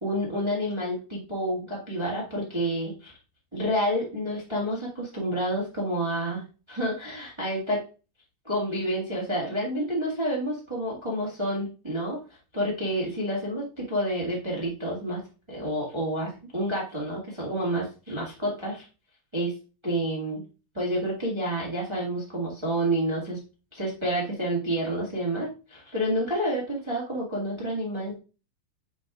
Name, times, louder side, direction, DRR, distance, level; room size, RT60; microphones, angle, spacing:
voice 1, 0.0-3.1 3.5-6.4 6.7-7.8 8.4-12.2 12.5-15.2 15.5-18.9 19.3-19.5 19.8-20.4 20.7-23.4 23.7-28.2, equal, 20° right, -4 dB, 0.7 m, -29 dB
8.2 x 5.2 x 2.4 m, 0.34 s
omnidirectional pair, 3.8 m